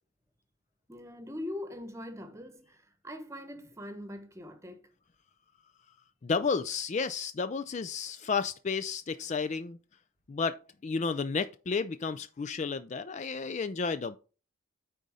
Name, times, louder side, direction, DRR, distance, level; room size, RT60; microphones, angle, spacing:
voice 1, 0.9-4.9, left 1 dB, 15° right, 1.1 m, -42 dB
voice 2, 6.2-9.8 10.3-14.2, left 5 dB, 35° left, 0.3 m, -32 dB
9.3 x 4.0 x 4.9 m
head